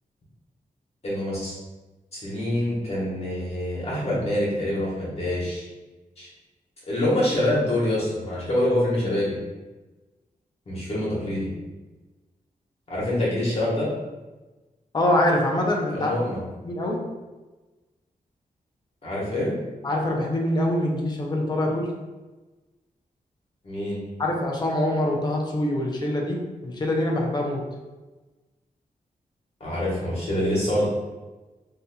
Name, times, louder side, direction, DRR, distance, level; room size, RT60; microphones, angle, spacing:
voice 1, 1.0-1.6 2.1-5.7 6.2-6.3 6.9-9.4 10.7-11.5 12.9-13.9 15.9-16.4 19.0-19.5 23.6-24.0 29.6-30.9, left 1 dB, 45° left, -7 dB, 1.1 m, -25 dB
voice 2, 14.9-16.1 16.6-17.0 19.8-21.9 24.2-27.6, left 1 dB, 30° left, -1 dB, 0.5 m, -24 dB
4.0 x 2.7 x 2.2 m, 1.2 s
wide cardioid pair, 170°, 15 cm